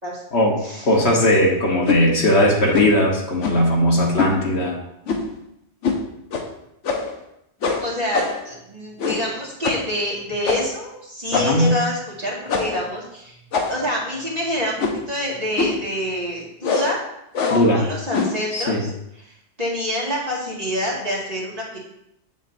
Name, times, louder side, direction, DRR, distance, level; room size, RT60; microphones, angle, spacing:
voice 1, 0.8-4.8 11.3-11.7 17.5-17.8 18.5-18.8, left 1 dB, 65° left, -1 dB, 1.5 m, -18 dB
sound 1, 1.8-2.0 2.7-3.0 3.4-3.7 4.2-4.4 5.1-5.4 5.8-6.0 6.3-6.5 6.8-7.2 7.6-8.5 9.0-9.3 9.6-9.9 10.4-10.8 11.3-11.7 12.5-12.8 13.5-14.0 14.8-15.1 15.6-15.9 16.6-17.0 17.3-17.7 18.1-18.4, left 4 dB, 80° left, 1.2 m, -24 dB
voice 2, 7.8-13.4 13.7-17.0 17.4-18.9 19.2-21.8, equal, 35° right, -6 dB, 2.1 m, -27 dB
7.7 x 7.4 x 2.6 m, 0.79 s
omnidirectional pair, 1.2 m